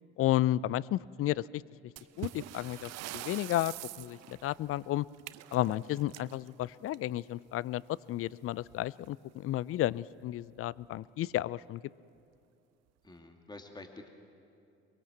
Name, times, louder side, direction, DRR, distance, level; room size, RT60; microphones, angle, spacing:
voice 1, 0.2-1.6 2.2-5.1 5.5-7.8 8.1-11.8, left 14 dB, 45° left, 22 dB, 0.5 m, -32 dB
sound 1, 2.0-7.3 8.6-8.8 9.1-9.2 9.8-9.9 10.6-10.9, right 15 dB, 50° right, 0.7 m, -45 dB
voice 2, 13.0-14.1, left 2 dB, 15° left, 4 dB, 2.3 m, -48 dB
23.0 x 22.0 x 7.6 m, 2.5 s
hypercardioid pair, 60°, 33 cm